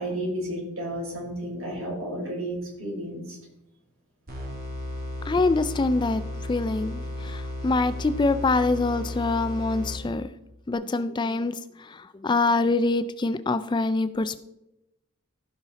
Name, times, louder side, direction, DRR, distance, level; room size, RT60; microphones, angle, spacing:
voice 1, 0.0-3.4, right 1 dB, 65° right, 4.2 m, -32 dB
sound 1, 4.3-10.3, left 1 dB, 45° right, 2.6 m, -34 dB
voice 2, 5.3-6.2 6.5-10.3 10.7-11.5 11.9-14.4, left 3 dB, 20° left, 0.3 m, -25 dB
15.5 x 5.6 x 4.0 m
head